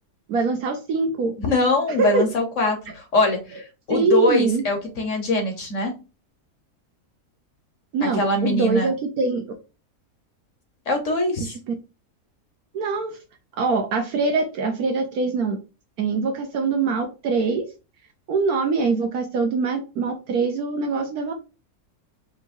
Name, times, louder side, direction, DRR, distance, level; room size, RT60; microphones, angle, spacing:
voice 1, 0.3-1.3 2.0-2.2 3.9-4.6 7.9-9.4 11.4-11.7 12.7-13.2 13.6-15.6 16.0-17.6 18.3-21.3, right 4 dB, 70° right, 4 dB, 1.2 m, -23 dB
voice 2, 1.4-5.9 8.1-8.9 10.9-11.6, left 2 dB, 50° left, 3 dB, 1.5 m, -22 dB
5.6 x 2.8 x 2.6 m, 0.30 s
omnidirectional pair, 1.7 m